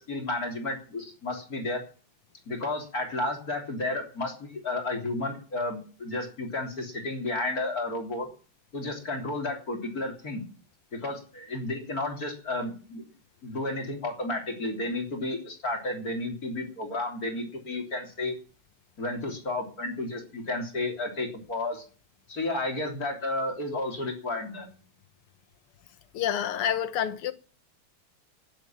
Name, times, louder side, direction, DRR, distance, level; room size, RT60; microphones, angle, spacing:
voice 1, 0.0-1.8 2.5-8.3 8.7-10.5 10.9-13.0 13.4-18.4 19.0-21.8 22.3-24.7, left 2 dB, 40° left, 3.8 m, -32 dB
voice 2, 26.1-27.3, left 9 dB, 80° left, 2.0 m, -28 dB
12.0 x 10.5 x 8.8 m
omnidirectional pair, 2.4 m